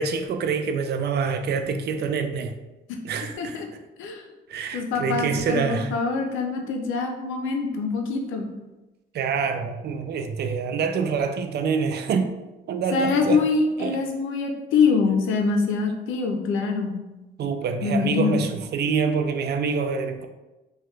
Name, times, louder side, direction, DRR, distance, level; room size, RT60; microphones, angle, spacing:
voice 1, 0.0-2.5 3.0-3.6 4.5-5.9 9.1-12.3 12.7-13.4 13.8-14.0 17.4-20.3, right 5 dB, 55° right, 0.4 m, -26 dB
voice 2, 4.7-8.5 12.9-17.0 17.8-18.4, left 4 dB, 85° left, 0.5 m, -24 dB
3.0 x 2.2 x 3.2 m
cardioid pair, 90°, 20 cm